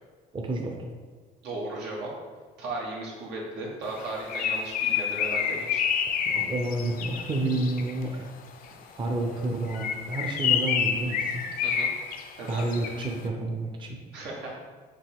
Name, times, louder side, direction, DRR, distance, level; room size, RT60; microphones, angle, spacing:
voice 1, 0.3-0.7 6.3-8.3 9.0-11.4 12.5-14.0, right 2 dB, 30° right, 2 dB, 0.6 m, -30 dB
voice 2, 1.4-2.1 2.6-5.8 8.7-9.0 11.6-11.9 12.4-12.6 14.1-14.5, right 2 dB, 90° right, -3 dB, 1.2 m, -36 dB
Bird, 3.9-8.0 9.6-13.2, left 8 dB, 55° left, 0.4 m, -28 dB
5.2 x 2.9 x 3.5 m, 1.5 s
cardioid pair, 110°, 17 cm